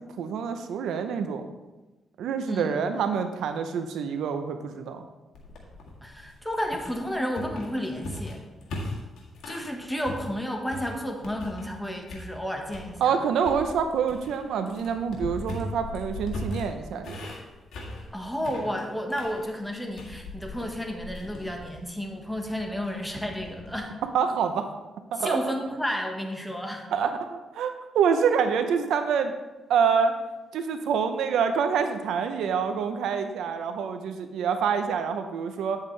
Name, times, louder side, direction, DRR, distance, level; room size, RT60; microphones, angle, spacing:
voice 1, 0.0-1.5 2.2-5.1 13.0-17.2 24.1-24.7 25.1-25.5 26.9-29.3 29.7-30.1 30.5-35.8, right 6 dB, 90° right, 8 dB, 0.7 m, -26 dB
voice 2, 2.5-2.8 6.0-8.4 9.4-13.2 18.1-23.9 25.2-26.9, equal, 5° left, 2 dB, 1.3 m, -32 dB
sound 1, 5.3-9.7 10.0-11.8 12.1-12.9 13.4-23.9, left 2 dB, 85° left, 1.8 m, -39 dB
9.2 x 7.4 x 3.3 m, 1.1 s
cardioid pair, 95°, 0 cm